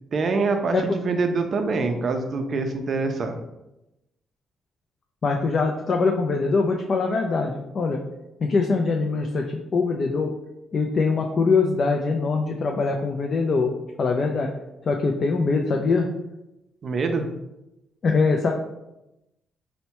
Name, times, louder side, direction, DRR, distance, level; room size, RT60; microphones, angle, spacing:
voice 1, 0.1-3.4 16.8-17.3, right 3 dB, 45° right, 5 dB, 0.4 m, -25 dB
voice 2, 5.2-8.0 8.4-10.3 10.7-13.7 14.0-14.5 14.8-16.1 18.0-18.5, left 4 dB, 40° left, 2 dB, 0.3 m, -23 dB
4.3 x 2.1 x 2.8 m, 0.93 s
cardioid pair, 125°, 0 cm